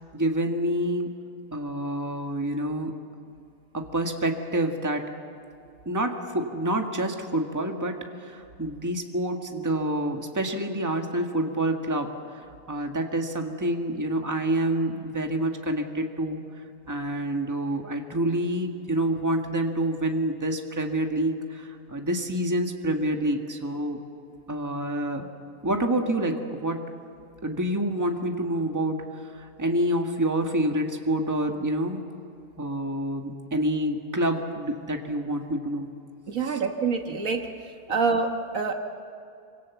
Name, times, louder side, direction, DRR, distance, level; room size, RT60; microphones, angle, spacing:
voice 1, 0.1-1.1 1.5-2.9 3.7-5.0 5.8-12.1 12.7-16.4 16.9-24.0 24.5-25.3 25.6-26.8 27.4-29.0 29.3-32.0 32.6-35.9 36.5-36.6, right 1 dB, 10° right, 3 dB, 1.6 m, -27 dB
voice 2, 36.3-37.5 37.9-38.7, right 4 dB, 65° right, 4 dB, 1.8 m, -26 dB
26.0 x 25.0 x 7.1 m, 2.4 s
omnidirectional pair, 1.5 m